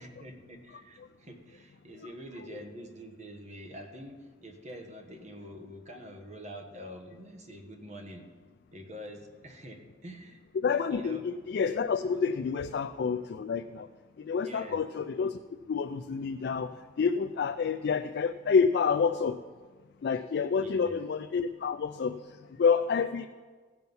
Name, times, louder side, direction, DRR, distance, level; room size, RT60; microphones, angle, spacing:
voice 1, 0.0-8.3 8.7-10.4 10.9-11.2 14.4-14.8 20.5-21.0, equal, 40° right, 3 dB, 1.3 m, -46 dB
voice 2, 10.6-13.9 14.2-15.4 15.7-19.4 20.0-23.3, left 5 dB, 60° left, 9 dB, 0.3 m, -28 dB
16.5 x 6.0 x 5.4 m, 1.5 s
head